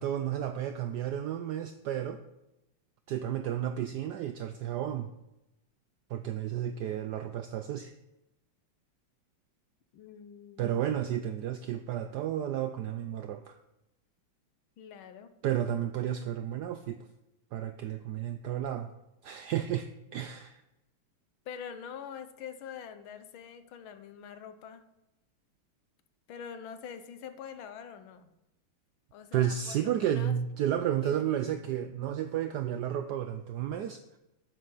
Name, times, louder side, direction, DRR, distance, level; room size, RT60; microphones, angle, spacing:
voice 1, 0.0-2.2 3.1-5.1 6.1-7.9 10.6-13.6 15.4-17.0 17.5-18.9 19.2-20.6 29.3-34.2, right 10 dB, 75° right, 9 dB, 1.0 m, -32 dB
voice 2, 9.9-11.0 14.8-15.3 21.4-24.8 26.3-28.3 29.1-30.4 31.0-31.2, left 7 dB, 85° left, 9 dB, 1.7 m, -44 dB
12.0 x 9.8 x 3.9 m, 0.93 s
omnidirectional pair, 2.2 m